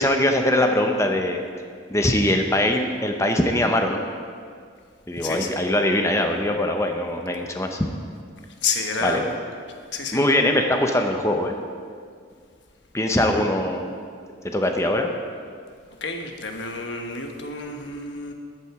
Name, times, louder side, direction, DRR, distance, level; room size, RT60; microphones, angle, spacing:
voice 1, 0.0-1.4 1.9-4.0 5.1-7.9 9.0-9.3 10.1-11.5 12.9-13.9 14.4-15.1, left 1 dB, 15° left, 4 dB, 0.8 m, -22 dB
voice 2, 5.2-5.6 8.6-9.3 9.9-10.2 16.0-18.3, left 4 dB, 65° left, 4 dB, 1.2 m, -29 dB
14.0 x 8.9 x 4.8 m, 2.1 s
head